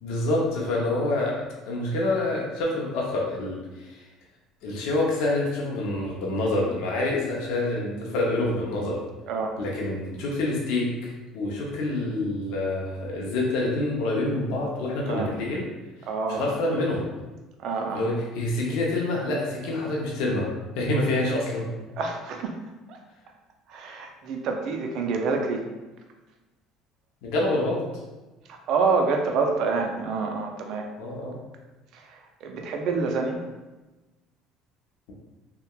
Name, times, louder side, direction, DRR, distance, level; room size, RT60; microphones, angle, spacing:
voice 1, 0.0-4.0 4.6-9.0 9.6-15.7 16.0-17.0 17.9-20.5 20.7-21.7 27.2-27.8 31.0-31.4, left 2 dB, 80° left, -3 dB, 0.5 m, -27 dB
voice 2, 9.3-9.6 15.1-15.3 16.0-16.5 17.6-18.1 22.0-22.6 22.9-23.0 23.7-25.7 28.5-30.9 31.9-33.4, right 4 dB, 60° right, 3 dB, 0.4 m, -27 dB
2.8 x 2.1 x 2.2 m, 1.1 s
supercardioid pair, 110°, 0 cm